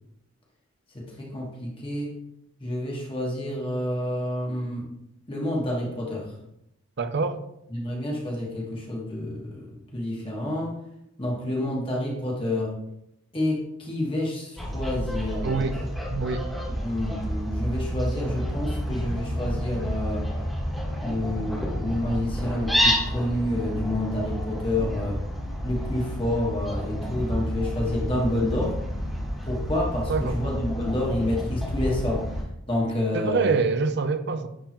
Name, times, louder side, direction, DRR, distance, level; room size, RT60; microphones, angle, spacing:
voice 1, 0.9-2.1 2.6-4.9 5.3-6.3 7.7-10.7 11.2-12.7 13.3-15.6 16.8-20.3 21.0-25.2 25.6-28.8 29.4-32.3 32.7-33.6, left 1 dB, 25° left, 1.3 m, -29 dB
voice 2, 7.0-7.4 15.4-15.8 16.1-16.5 30.1-30.4 33.1-34.5, right 4 dB, 50° right, 0.5 m, -25 dB
Fowl, 14.6-32.4, equal, ahead, 1.4 m, -30 dB
10.0 x 3.6 x 2.9 m
head